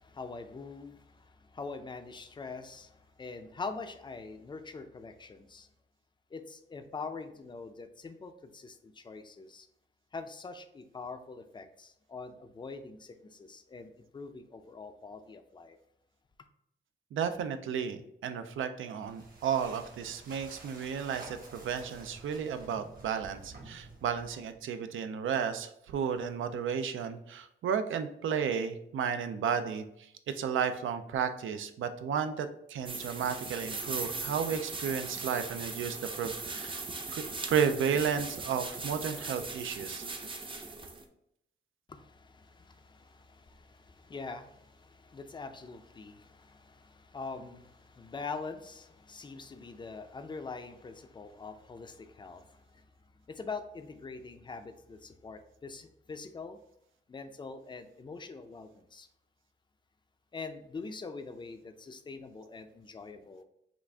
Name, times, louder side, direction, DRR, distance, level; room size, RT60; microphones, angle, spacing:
voice 1, 0.0-5.7 6.3-9.7 10.1-15.8 41.9-52.9 53.1-56.6 57.1-59.1 60.3-63.4, left 4 dB, 25° left, 8 dB, 0.4 m, -44 dB
voice 2, 17.1-29.8 30.3-36.8 37.1-40.1, right 7 dB, 80° right, 9 dB, 0.5 m, -33 dB
sound 1, 19.0-24.6, right 2 dB, 45° right, 1.1 m, -51 dB
sound 2, 32.8-41.0, right 3 dB, 25° right, 0.5 m, -39 dB
5.9 x 2.4 x 3.4 m, 0.77 s
wide cardioid pair, 125°, 20 cm